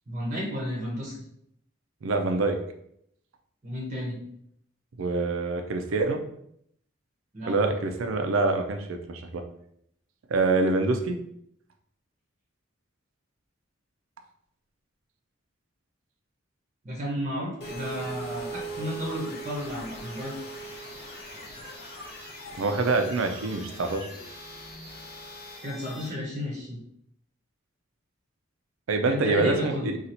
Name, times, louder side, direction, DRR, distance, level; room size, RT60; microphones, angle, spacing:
voice 1, 0.1-1.1 3.6-4.2 7.3-7.5 16.8-20.3 25.6-26.8 29.1-29.9, equal, 35° right, -4 dB, 0.8 m, -32 dB
voice 2, 2.0-2.6 5.0-6.2 7.5-9.4 10.3-11.2 22.6-24.1 28.9-30.0, right 3 dB, 80° right, 6 dB, 0.5 m, -25 dB
sound 1, 17.6-26.1, right 2 dB, 50° left, 0.8 m, -40 dB
2.7 x 2.4 x 4.2 m, 0.71 s
head